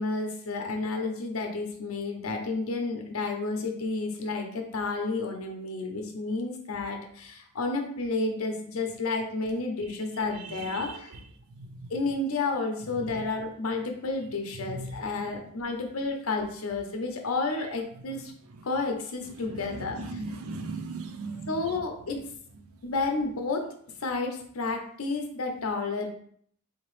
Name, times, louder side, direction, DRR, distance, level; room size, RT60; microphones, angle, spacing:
voice 1, 0.0-11.2 11.9-18.3 18.6-20.0 21.5-22.3 22.8-23.7 24.0-26.1, left 3 dB, 75° left, 3 dB, 0.7 m, -31 dB
voice 2, 10.3-11.2 11.5-11.9 13.0-13.1 14.5-15.3 18.1-18.2 18.6-18.7 19.2-21.8, right 3 dB, 85° right, 6 dB, 0.5 m, -39 dB
3.9 x 2.9 x 3.2 m, 0.62 s
head